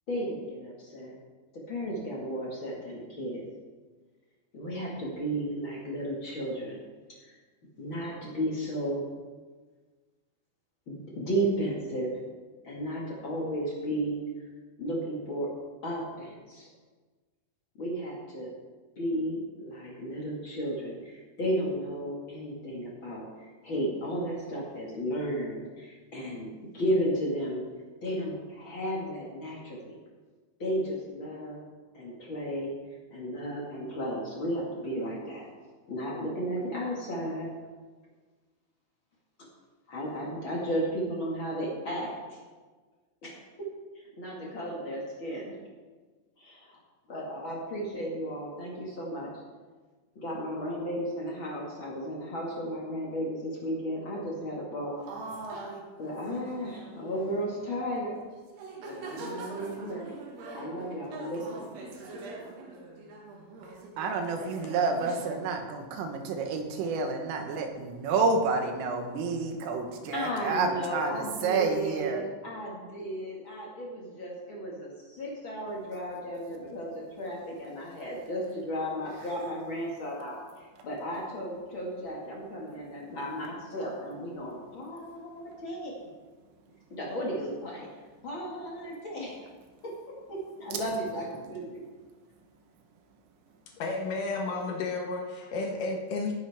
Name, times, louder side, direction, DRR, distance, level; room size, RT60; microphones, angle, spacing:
voice 1, 0.1-1.1 1.7-3.4 4.5-6.8 7.2-7.3 7.8-9.0 10.9-12.1 12.6-14.2 14.8-15.5 15.8-16.7 17.7-18.5 18.9-26.5 26.7-27.6 28.0-30.0 30.6-31.6 31.9-32.7 33.1-35.5 35.9-37.5 39.9-42.4 43.2-43.4 43.9-45.5 46.4-46.8 47.1-49.3 50.1-55.0 56.0-58.2 58.9-60.0 60.5-61.7 70.1-80.4 80.8-85.9 86.9-87.9 88.2-89.5 89.8-91.8, equal, 55° left, -4 dB, 1.3 m, -34 dB
sound 1, 55.1-57.6 58.1-58.3 58.5-65.3, right 2 dB, 60° right, 3.5 m, -43 dB
voice 2, 63.6-72.2 79.2-79.3, right 4 dB, 80° right, 4 dB, 3.9 m, -29 dB
voice 3, 93.7-96.3, left 3 dB, 75° left, 0 dB, 1.9 m, -32 dB
18.5 x 10.0 x 3.6 m, 1.4 s
omnidirectional pair, 5.9 m